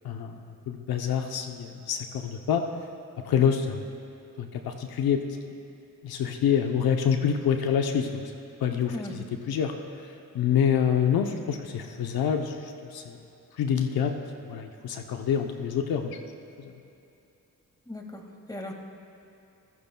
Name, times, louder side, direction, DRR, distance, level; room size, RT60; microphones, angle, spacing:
voice 1, 0.0-0.4 0.7-2.6 3.3-3.8 4.4-5.4 6.0-8.1 8.6-9.7 10.3-13.2 13.6-14.1 14.5-16.2 16.6-16.7, left 8 dB, 85° left, 4 dB, 0.8 m, -26 dB
voice 2, 17.9-18.7, left 1 dB, 10° left, 1 dB, 2.0 m, -38 dB
23.0 x 15.0 x 2.3 m, 2.7 s
cardioid pair, 65°, 36 cm